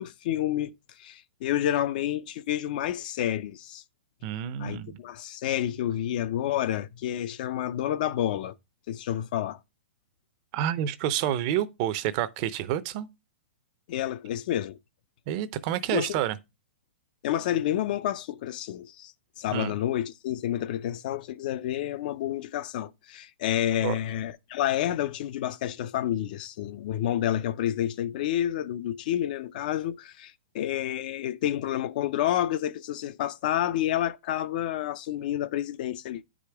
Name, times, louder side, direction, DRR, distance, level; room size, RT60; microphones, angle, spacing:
voice 1, 0.0-3.8 4.6-8.6 8.9-9.6 13.9-14.8 15.9-16.2 17.2-36.2, left 12 dB, 45° left, 0.4 m, -29 dB
voice 2, 4.2-5.0 10.5-13.1 15.3-16.3 19.5-19.7 23.8-24.0, right 11 dB, 35° right, 0.6 m, -29 dB
9.7 x 5.0 x 3.4 m
hypercardioid pair, 155°, 6 cm